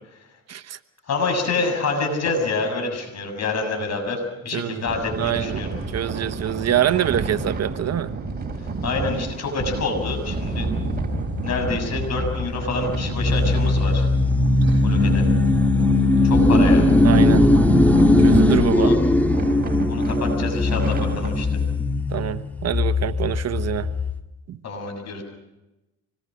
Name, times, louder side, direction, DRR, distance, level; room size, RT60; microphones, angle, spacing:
voice 1, 0.5-0.8 4.5-4.8 5.2-8.1 14.7-14.8 17.0-17.6 18.2-18.9 22.1-23.9 24.5-24.6, right 10 dB, 55° right, 11 dB, 1.1 m, -25 dB
voice 2, 1.1-5.7 8.8-10.7 11.4-14.1 14.8-15.3 16.2-16.9 18.7-19.0 19.9-21.5 24.6-25.2, left 3 dB, 60° left, 4 dB, 6.9 m, -27 dB
sound 1, 4.9-21.3, right 3 dB, 30° right, 4.0 m, -30 dB
sound 2, 10.0-24.2, left 2 dB, 5° left, 1.7 m, -19 dB
25.5 x 21.0 x 6.3 m, 1.0 s
cardioid pair, 90°, 30 cm